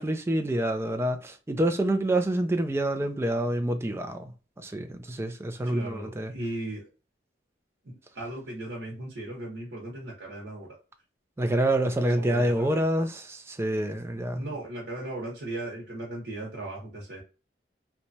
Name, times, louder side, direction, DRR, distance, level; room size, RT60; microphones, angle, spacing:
voice 1, 0.0-4.3 4.6-6.3 11.4-14.5, right 1 dB, 15° right, 0.3 m, -27 dB
voice 2, 5.7-6.9 7.8-10.8 12.1-12.8 14.3-17.2, right 1 dB, 85° right, 0.9 m, -37 dB
3.0 x 2.2 x 2.6 m
head